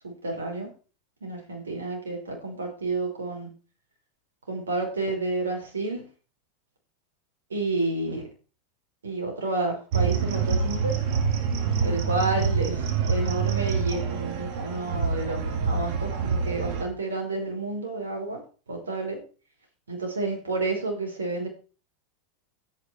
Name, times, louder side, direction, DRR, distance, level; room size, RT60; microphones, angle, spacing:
voice 1, 0.0-0.7 1.2-3.5 4.5-6.0 7.5-8.2 9.0-11.0 11.8-18.4 18.7-19.2 19.9-21.5, right 2 dB, 75° right, 1 dB, 5.5 m, -30 dB
sound 1, 9.9-16.8, right 6 dB, 50° right, 2.7 m, -26 dB
13.0 x 9.5 x 4.6 m, 0.36 s
figure-of-eight pair, 85°, 0 cm